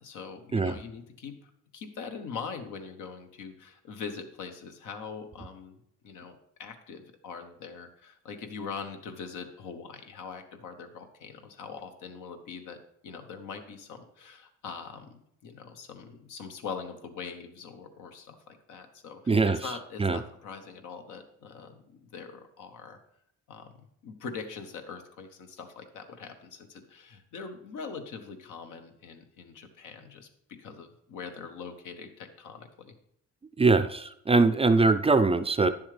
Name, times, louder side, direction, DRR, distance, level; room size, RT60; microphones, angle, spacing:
voice 1, 0.0-5.8 6.0-23.0 23.5-32.9, left 5 dB, 80° left, 6 dB, 1.1 m, -42 dB
voice 2, 19.3-19.6 20.0-20.2 33.6-35.7, right 3 dB, 20° right, 11 dB, 0.4 m, -22 dB
9.9 x 7.2 x 3.3 m, 0.75 s
cardioid pair, 90°, 30 cm